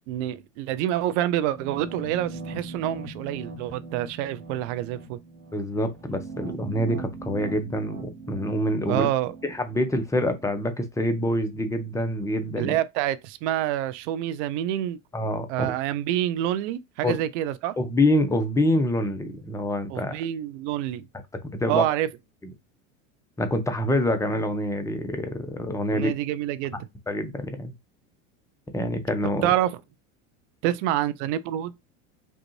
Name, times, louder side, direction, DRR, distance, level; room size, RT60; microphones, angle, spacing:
voice 1, 0.1-5.2 8.9-9.3 12.6-15.0 15.5-17.8 19.9-21.1 21.7-22.1 25.9-26.8 29.4-29.8 30.6-31.7, right 12 dB, 65° right, 0.6 m, -27 dB
sound 1, 1.5-10.5, right 3 dB, 85° right, 1.3 m, -40 dB
voice 2, 5.5-9.1 9.4-12.8 15.1-15.7 17.0-17.1 17.8-20.2 21.5-21.9 23.4-26.1 27.1-27.7 28.7-29.5, left 1 dB, 10° left, 0.8 m, -26 dB
5.2 x 2.4 x 3.1 m
supercardioid pair, 105°, 39 cm